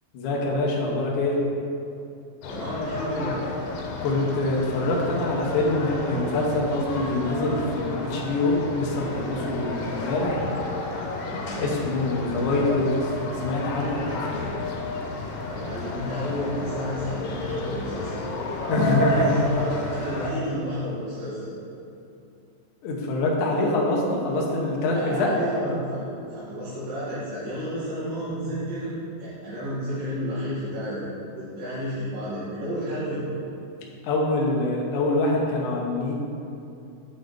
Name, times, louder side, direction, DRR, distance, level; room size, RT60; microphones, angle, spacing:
voice 1, 0.1-1.4 4.0-10.4 11.6-13.1 13.4-14.4 18.7-19.3 22.8-25.3 34.0-36.1, left 2 dB, 70° left, -2 dB, 1.9 m, -25 dB
sound 1, 2.4-20.3, left 2 dB, 90° left, 2.9 m, -31 dB
voice 2, 2.5-3.4 11.3-11.8 15.5-18.4 19.0-21.5 24.9-31.0 31.3-33.2, equal, 75° right, -13 dB, 3.8 m, -31 dB
8.3 x 4.1 x 5.0 m, 2.7 s
omnidirectional pair, 4.7 m